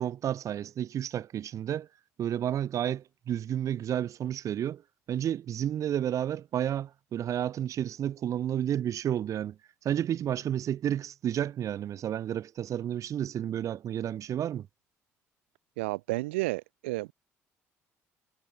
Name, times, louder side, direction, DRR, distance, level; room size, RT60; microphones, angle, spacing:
voice 1, 0.0-1.9 2.2-4.8 5.1-9.6 9.8-14.7, right 10 dB, 60° right, 1.4 m, -31 dB
voice 2, 15.8-17.1, right 22 dB, 85° right, 0.6 m, -31 dB
hypercardioid pair, 55°, 6 cm